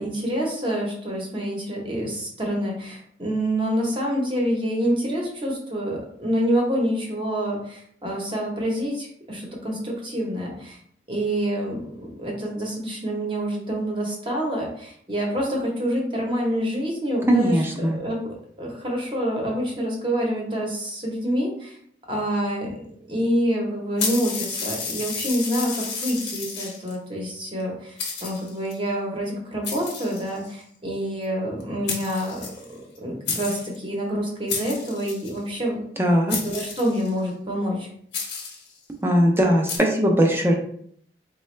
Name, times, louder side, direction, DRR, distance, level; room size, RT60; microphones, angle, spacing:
voice 1, 0.0-10.8 11.1-18.2 18.6-21.8 22.1-22.7 23.1-32.5 33.0-35.8 36.4-37.9, equal, 30° right, -2 dB, 0.9 m, -27 dB
voice 2, 17.3-18.0 36.0-36.4 39.0-40.5, equal, 15° right, 1 dB, 0.5 m, -19 dB
sound 1, 24.0-26.9 27.6-27.7 28.0-28.7 29.6-30.6 31.6-31.7 31.9-33.0 33.3-33.8 34.5-35.4 36.3-37.2 38.1-38.7 39.7-39.8, left 5 dB, 80° left, 1.0 m, -31 dB
4.0 x 2.3 x 3.2 m, 0.66 s
head